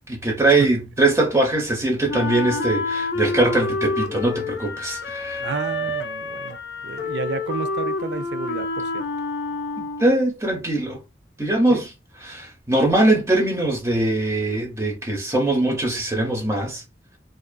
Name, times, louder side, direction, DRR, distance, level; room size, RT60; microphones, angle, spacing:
voice 1, 0.1-5.4 9.8-11.0 11.4-11.9 12.2-16.8, right 2 dB, 15° right, 0.6 m, -21 dB
Wind instrument woodwind instrument, 2.1-10.3, left 3 dB, 70° left, 0.4 m, -28 dB
voice 2, 5.4-6.6 6.8-9.0 11.7-11.8, right 5 dB, 75° right, 0.3 m, -31 dB
2.4 x 2.3 x 2.2 m
head